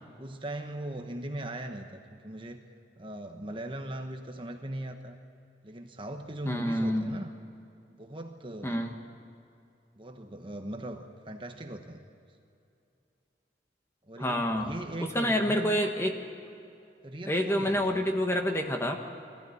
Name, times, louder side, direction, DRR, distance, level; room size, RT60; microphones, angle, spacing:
voice 1, 0.2-2.7 3.0-5.2 5.6-7.3 8.0-8.8 10.0-12.0 14.1-15.8 17.0-17.9, right 1 dB, 30° right, 5 dB, 1.1 m, -39 dB
voice 2, 6.4-7.1 8.6-8.9 14.2-14.7 15.0-16.1 17.3-19.0, equal, 15° left, 3 dB, 1.5 m, -28 dB
22.0 x 15.5 x 9.7 m, 2.6 s
head